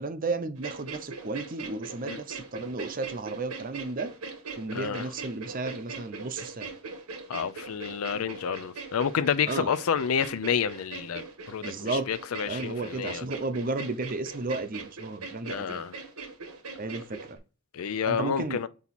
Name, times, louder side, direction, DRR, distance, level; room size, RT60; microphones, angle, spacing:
voice 1, 0.0-4.1 4.6-6.7 9.5-9.7 11.6-12.1 12.5-15.8 16.8-17.4 18.0-18.6, right 3 dB, 40° right, 0.6 m, -33 dB
sound 1, 0.6-17.4, right 4 dB, 90° right, 1.3 m, -40 dB
voice 2, 4.7-5.1 7.3-13.3 15.5-15.9 17.7-18.7, left 7 dB, 70° left, 0.4 m, -29 dB
8.2 x 2.9 x 4.2 m
head